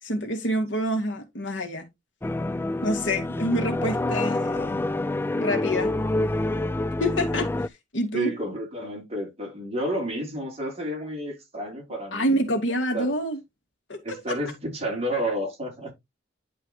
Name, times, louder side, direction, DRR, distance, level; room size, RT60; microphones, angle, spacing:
voice 1, 0.0-1.9 2.8-4.8 5.3-5.9 7.0-7.5 7.9-8.3 12.1-13.4 13.9-14.2, equal, 85° left, 2.4 m, -27 dB
sound 1, 2.2-7.7, left 2 dB, 10° left, 0.3 m, -27 dB
voice 2, 8.1-12.3 12.9-13.1 14.0-15.9, right 1 dB, 35° right, 4.1 m, -30 dB
10.5 x 4.8 x 3.2 m
head